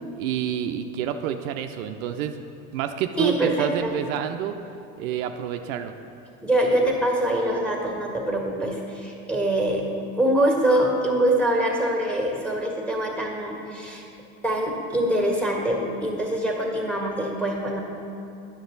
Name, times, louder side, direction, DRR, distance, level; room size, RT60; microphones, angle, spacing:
voice 1, 0.2-2.4 2.7-4.6 5.0-5.9, right 9 dB, 70° right, 7 dB, 0.5 m, -28 dB
voice 2, 3.2-3.9 6.4-9.8 10.1-14.0 14.4-17.8, right 1 dB, ahead, -1 dB, 1.6 m, -24 dB
9.4 x 6.4 x 3.9 m, 2.6 s
hypercardioid pair, 75°, 42 cm